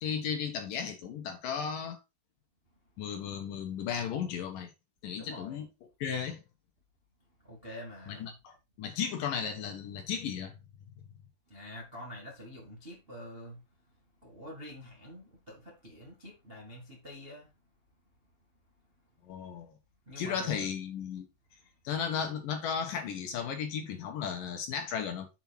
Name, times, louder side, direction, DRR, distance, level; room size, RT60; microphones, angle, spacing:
voice 1, 0.0-2.0 3.0-4.7 5.0-5.7 6.0-6.4 8.1-10.5 19.2-19.7 20.2-21.3 21.8-25.3, left 7 dB, 70° left, 2.4 m, -35 dB
voice 2, 5.1-5.6 7.4-8.3 11.5-13.6 14.2-17.5 20.0-20.7 22.1-22.2, left 1 dB, 35° right, 0.8 m, -46 dB
7.2 x 5.5 x 4.3 m
omnidirectional pair, 4.8 m